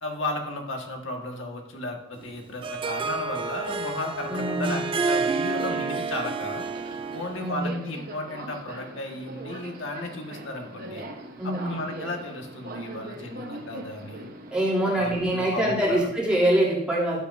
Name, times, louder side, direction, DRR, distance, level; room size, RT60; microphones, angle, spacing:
voice 1, 0.0-6.6 7.1-11.0 11.4-14.3 15.0-16.1, left 2 dB, 60° left, 1 dB, 1.6 m, -34 dB
Harp, 2.2-7.5, right 4 dB, 25° right, 0.3 m, -29 dB
voice 2, 4.3-4.8 7.3-7.9 11.4-11.8 14.5-17.2, right 1 dB, 5° right, -7 dB, 2.7 m, -24 dB
Subway metro underground, 5.7-15.2, right 1 dB, 45° right, 1.0 m, -41 dB
12.5 x 8.0 x 2.6 m, 0.86 s
head